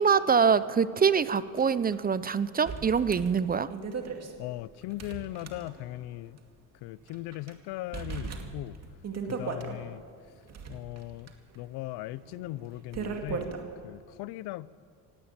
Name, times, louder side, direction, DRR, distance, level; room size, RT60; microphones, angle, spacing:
voice 1, 0.0-3.7, right 6 dB, 25° right, 15 dB, 0.6 m, -24 dB
sound 1, 1.6-1.7 1.9-2.0 2.7-6.1 6.4-6.5 7.1-7.5 7.9-9.8 10.3-13.6, right 5 dB, 40° right, 2.3 m, -38 dB
voice 2, 4.4-6.4 6.8-8.8 9.2-10.0 10.7-13.5 13.8-14.7, left 17 dB, 85° left, 20 dB, 0.6 m, -39 dB
18.0 x 17.0 x 8.8 m, 2.1 s
cardioid pair, 115°, 39 cm